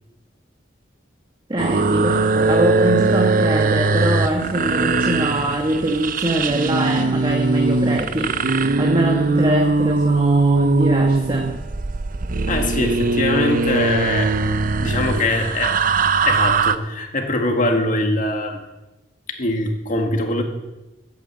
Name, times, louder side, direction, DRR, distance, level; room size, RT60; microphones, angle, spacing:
voice 1, 1.5-8.3 8.8-11.5, right 1 dB, 25° right, 1 dB, 1.3 m, -23 dB
sound 1, 1.6-16.8, right 3 dB, 45° right, 0.6 m, -20 dB
voice 2, 12.5-14.3 14.8-15.8 16.2-18.6 19.4-20.4, left 2 dB, 45° left, 3 dB, 1.9 m, -22 dB
12.0 x 9.0 x 7.8 m, 1.0 s
head